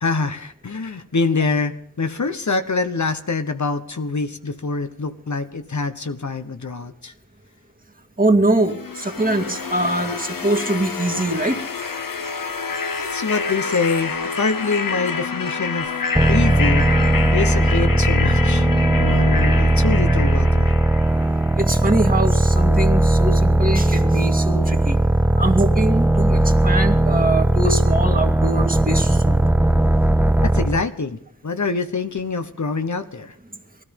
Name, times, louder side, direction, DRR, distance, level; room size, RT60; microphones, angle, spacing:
voice 1, 0.0-7.1 13.0-15.9 16.3-16.9 17.3-18.7 19.0-20.7 30.4-33.3, left 4 dB, 60° left, 8 dB, 1.1 m, -25 dB
voice 2, 8.2-11.6 21.6-25.0 25.4-29.4, right 2 dB, 25° right, 4 dB, 2.1 m, -23 dB
sound 1, 8.7-21.6, left 5 dB, 85° left, 1.1 m, -28 dB
sound 2, 16.1-30.9, right 1 dB, 5° right, 0.6 m, -18 dB
18.5 x 13.5 x 5.3 m, 0.68 s
cardioid pair, 40°, 33 cm